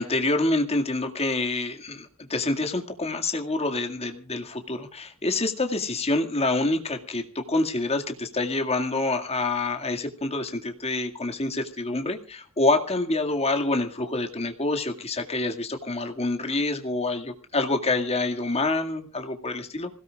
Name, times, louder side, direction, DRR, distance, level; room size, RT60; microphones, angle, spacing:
voice 1, 0.0-19.9, left 2 dB, 30° left, 4 dB, 2.1 m, -27 dB
26.5 x 17.0 x 2.4 m, 0.37 s
head